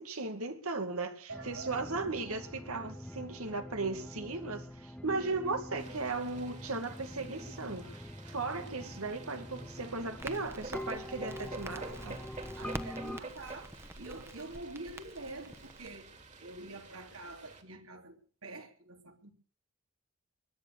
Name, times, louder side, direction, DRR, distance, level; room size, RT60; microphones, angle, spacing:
voice 1, 0.0-12.2, right 3 dB, 90° right, 2.4 m, -37 dB
sound 1, 1.3-13.2, left 1 dB, 5° left, 0.8 m, -45 dB
voice 2, 1.3-1.9 11.8-12.1 12.6-16.1 16.4-19.3, right 2 dB, 70° right, 3.3 m, -46 dB
sound 2, 5.8-17.6, right 3 dB, 35° right, 2.7 m, -50 dB
Crackle, 10.2-15.9, right 1 dB, 10° right, 1.3 m, -47 dB
22.0 x 9.4 x 6.7 m
head